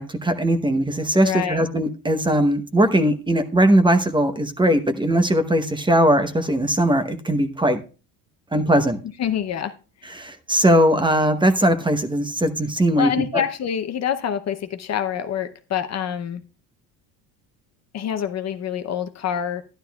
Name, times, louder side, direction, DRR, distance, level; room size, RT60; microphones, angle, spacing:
voice 1, 0.0-7.8 8.5-9.0 10.1-13.4, right 1 dB, 10° right, 0.9 m, -19 dB
voice 2, 1.1-1.6 9.2-9.7 13.0-16.4 17.9-19.6, left 9 dB, 40° left, 0.8 m, -26 dB
12.5 x 11.5 x 2.3 m
cardioid pair, 120°, 39 cm